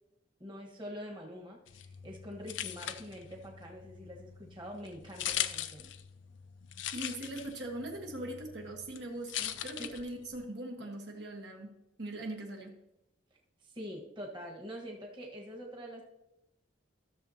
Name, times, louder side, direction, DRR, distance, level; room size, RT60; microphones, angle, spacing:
voice 1, 0.4-5.9 9.8-9.9 13.6-16.0, equal, 25° right, -1 dB, 1.4 m, -45 dB
sound 1, 1.7-10.4, left 11 dB, 80° left, 0.5 m, -41 dB
voice 2, 6.9-12.8, right 1 dB, 65° right, 1 dB, 1.3 m, -41 dB
14.5 x 6.8 x 2.8 m, 0.91 s
head